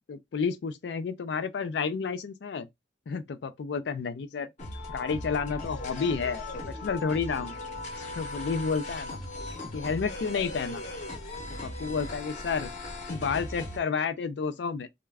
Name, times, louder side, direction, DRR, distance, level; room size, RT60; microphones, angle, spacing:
voice 1, 0.1-2.7 3.1-4.5 4.9-6.4 6.7-7.6 8.2-9.2 9.7-10.8 11.6-12.7 13.1-14.9, left 5 dB, 70° left, 0.4 m, -30 dB
sound 1, 4.6-13.8, left 2 dB, 40° left, 0.8 m, -38 dB
2.3 x 2.2 x 3.3 m
head